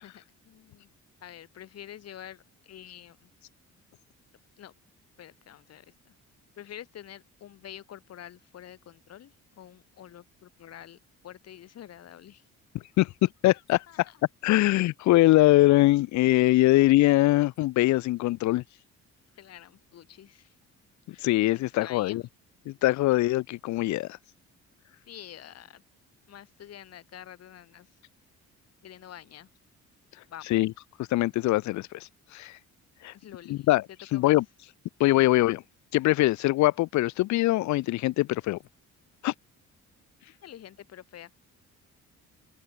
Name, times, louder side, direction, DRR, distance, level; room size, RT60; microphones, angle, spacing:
voice 1, 0.0-3.3 4.6-4.7 5.2-6.1 6.6-11.0 11.2-12.4 13.9-14.2 14.6-14.7 16.6-16.7 19.3-20.5 21.8-22.3 25.1-25.8 26.3-27.9 28.8-29.5 30.3-30.5 33.1-33.7 34.1-34.3 40.4-41.3, left 11 dB, 60° left, 2.8 m, -47 dB
voice 2, 13.0-14.1 14.4-18.6 21.1-22.2 22.7-24.1 30.5-30.7 31.1-32.6 33.0-33.1 33.5-33.8 34.1-34.4 35.0-35.6 35.9-38.6 39.2-39.3, left 17 dB, 75° left, 0.5 m, -23 dB
open air
cardioid pair, 145°, 29 cm